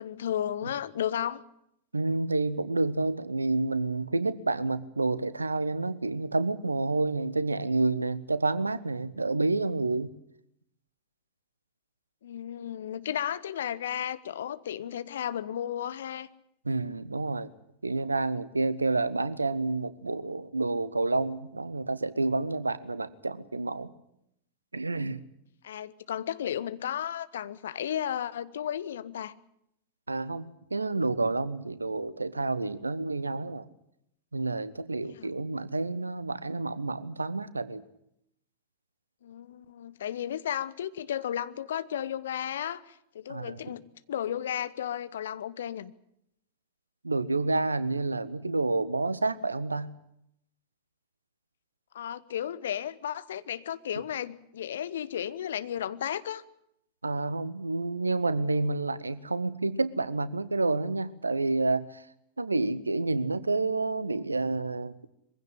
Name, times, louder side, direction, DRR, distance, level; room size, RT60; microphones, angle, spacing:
voice 1, 0.0-1.4 12.2-16.3 25.6-29.3 35.0-35.3 39.2-45.9 51.9-56.4, left 10 dB, 60° left, 15 dB, 1.0 m, -34 dB
voice 2, 1.9-10.1 16.6-17.5 17.8-23.9 24.7-25.2 30.1-33.6 34.3-37.8 43.3-43.6 47.0-49.9 57.0-62.0 62.4-65.0, right 3 dB, 80° right, 17 dB, 1.1 m, -29 dB
22.5 x 16.0 x 10.0 m, 0.76 s
figure-of-eight pair, 90°, 0 cm